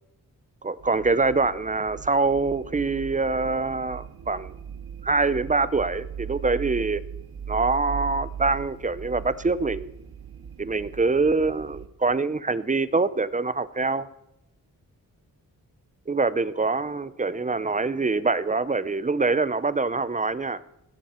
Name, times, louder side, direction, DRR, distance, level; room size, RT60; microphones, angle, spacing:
voice 1, 0.6-4.5 5.0-7.0 7.5-9.9 10.6-14.1 16.1-20.6, right 3 dB, 20° right, 16 dB, 0.6 m, -24 dB
sound 1, 0.8-11.9, right 8 dB, 85° right, 2.0 m, -39 dB
18.5 x 17.5 x 4.4 m, 0.89 s
wide cardioid pair, 150°, 35 cm